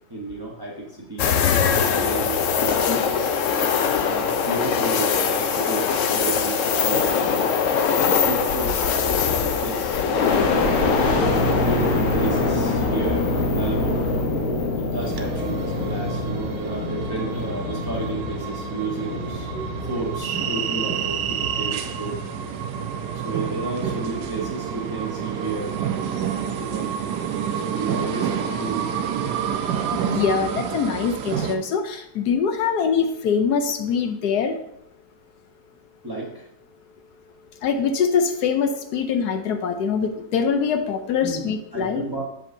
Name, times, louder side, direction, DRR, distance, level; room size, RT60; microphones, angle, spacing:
voice 1, 0.1-1.3 1.8-3.0 4.0-7.3 8.1-11.1 11.4-14.0 14.7-19.5 19.8-22.2 23.1-25.8 26.4-26.9 27.5-30.0 36.0-36.5 41.2-42.2, right 2 dB, 20° right, -3 dB, 0.6 m, -32 dB
sound 1, 1.2-14.2 14.6-14.7 17.1-17.6, left 6 dB, 90° left, 0.6 m, -23 dB
voice 2, 2.7-3.0 29.9-34.6 37.6-42.1, left 6 dB, 70° left, 7 dB, 1.0 m, -23 dB
sound 2, 10.1-24.1 24.6-25.4, left 2 dB, 55° left, 1.5 m, -26 dB
sound 3, 15.0-31.6, right 8 dB, 70° right, 1.1 m, -29 dB
7.6 x 7.3 x 2.6 m, 0.75 s
omnidirectional pair, 2.1 m